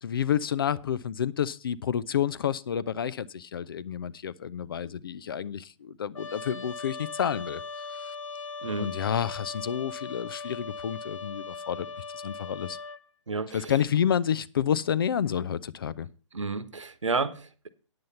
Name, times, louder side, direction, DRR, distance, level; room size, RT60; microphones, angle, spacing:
voice 1, 0.0-7.6 8.8-11.9 12.2-12.8 13.5-16.1, left 9 dB, 45° left, 0.5 m, -29 dB
Trumpet, 6.1-13.0, left 4 dB, 80° left, 0.9 m, -39 dB
voice 2, 8.6-8.9 13.3-13.7 16.3-17.7, right 4 dB, 70° right, 1.1 m, -31 dB
9.7 x 7.5 x 5.5 m
figure-of-eight pair, 130°, 16 cm